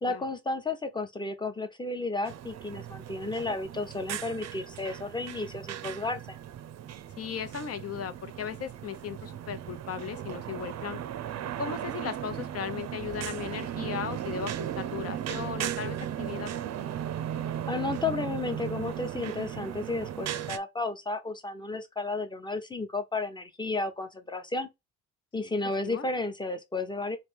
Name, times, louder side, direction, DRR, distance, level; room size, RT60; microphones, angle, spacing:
voice 1, 0.0-6.4 17.7-24.7 25.3-27.2, left 3 dB, 15° left, 0.8 m, -33 dB
sound 1, 2.2-20.6, right 10 dB, 60° right, 0.6 m, -36 dB
voice 2, 7.2-11.0 11.6-16.5 25.8-26.1, left 8 dB, 50° left, 0.7 m, -37 dB
3.3 x 2.8 x 3.4 m
cardioid pair, 90°, 30 cm